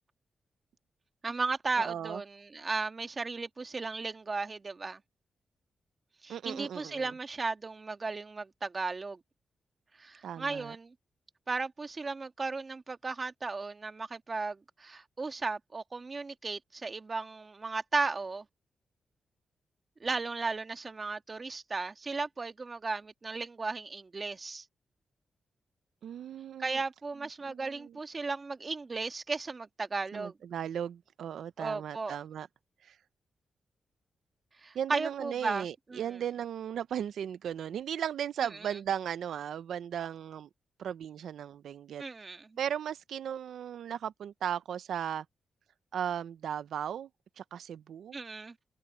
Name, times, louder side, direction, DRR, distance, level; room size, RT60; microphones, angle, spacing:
voice 1, 1.2-5.0 6.2-9.2 10.0-10.9 11.5-18.5 20.0-24.6 26.6-30.3 31.6-32.2 34.6-36.0 38.6-38.7 42.0-42.6 48.1-48.6, right 3 dB, 40° right, 1.9 m, -35 dB
voice 2, 1.8-2.2 6.3-7.1 10.2-10.8 26.0-26.8 27.4-28.0 30.1-32.5 32.8-33.0 34.7-40.5 40.8-42.0 42.6-45.2 45.9-47.1 47.4-48.2, right 9 dB, 80° right, 0.7 m, -36 dB
cardioid pair, 65°, 0 cm